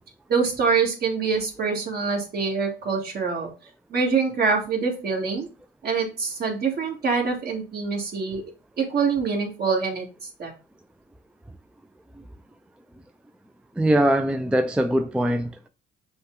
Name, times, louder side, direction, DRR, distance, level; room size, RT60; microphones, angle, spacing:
voice 1, 0.3-3.5 3.9-5.5 5.8-8.5 8.8-10.1 10.4-10.5, right 5 dB, 55° right, 1.7 m, -25 dB
voice 2, 13.8-15.7, right 1 dB, 5° right, 0.3 m, -22 dB
5.6 x 2.2 x 3.7 m
cardioid pair, 90°, 20 cm